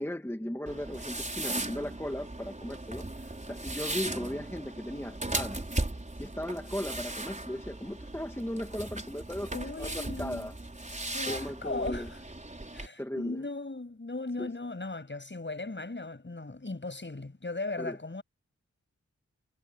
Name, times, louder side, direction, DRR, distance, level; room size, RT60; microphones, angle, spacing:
voice 1, 0.0-5.7 6.2-9.5 9.8-10.5 11.3-12.1 13.0-13.4 14.4-14.5 17.8-18.0, equal, 10° left, 1.9 m, -37 dB
sound 1, 0.7-12.9, right 2 dB, 25° right, 5.0 m, -37 dB
voice 2, 9.5-10.5 11.1-12.2 12.7-18.2, left 2 dB, 40° left, 7.2 m, -37 dB
wide cardioid pair, 85°, 29 cm